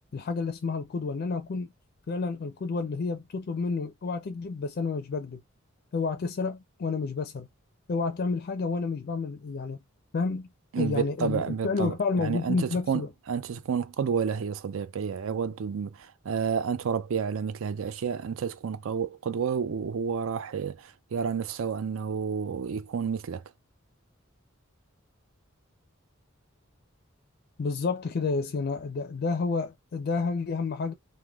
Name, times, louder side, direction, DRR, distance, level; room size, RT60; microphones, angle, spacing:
voice 1, 0.1-1.7 2.1-5.4 5.9-7.5 7.9-9.8 10.1-10.5 10.8-13.1 27.6-30.9, left 4 dB, 50° left, 0.4 m, -30 dB
voice 2, 10.7-23.4, right 6 dB, 75° right, 0.4 m, -30 dB
3.2 x 2.1 x 2.2 m
head